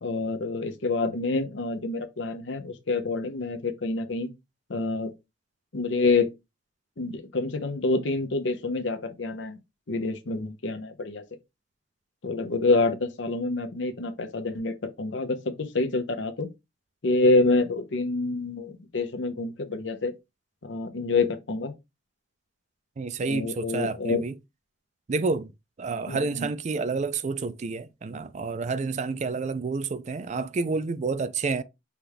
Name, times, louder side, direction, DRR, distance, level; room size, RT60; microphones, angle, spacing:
voice 1, 0.0-4.3 4.7-5.1 5.7-6.3 7.0-9.6 9.9-11.2 12.2-16.5 17.0-20.1 20.6-21.7 23.2-24.2 26.1-26.5, left 3 dB, 75° left, 0.8 m, -27 dB
voice 2, 23.0-24.3 25.1-25.5 25.8-31.6, right 4 dB, 40° right, 0.4 m, -29 dB
5.8 x 2.4 x 3.4 m
head